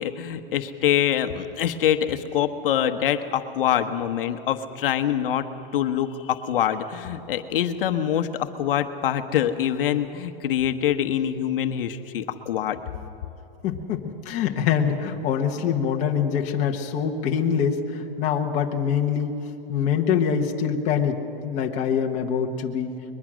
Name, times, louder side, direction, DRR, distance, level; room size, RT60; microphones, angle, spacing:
voice 1, 0.0-5.5 5.7-12.8, left 10 dB, 65° left, 8 dB, 1.1 m, -25 dB
voice 2, 13.6-19.4 19.7-23.0, left 7 dB, 25° left, 1 dB, 1.2 m, -24 dB
22.5 x 21.5 x 6.3 m, 2.8 s
supercardioid pair, 165°, 30 cm